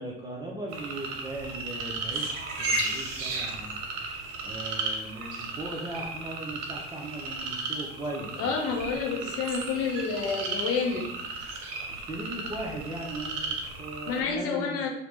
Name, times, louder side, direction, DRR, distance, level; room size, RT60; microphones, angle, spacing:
voice 1, 0.0-3.8 4.4-8.6 11.9-14.9, right 1 dB, 15° right, -2 dB, 0.3 m, -38 dB
sound 1, 0.7-14.2, right 3 dB, 55° right, 0.7 m, -34 dB
voice 2, 8.4-11.1 14.1-14.9, left 5 dB, 45° left, 2 dB, 0.6 m, -29 dB
2.8 x 2.0 x 3.1 m, 0.84 s
figure-of-eight pair, 60°, 33 cm